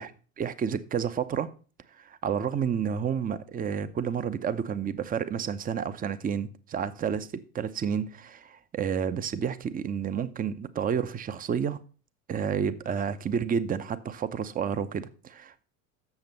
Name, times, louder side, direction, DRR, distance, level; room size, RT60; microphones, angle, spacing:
voice 1, 0.4-1.5 2.0-11.8 12.3-15.6, right 7 dB, 20° right, 0.6 m, -30 dB
8.0 x 6.6 x 5.4 m
hypercardioid pair, 80°, 41 cm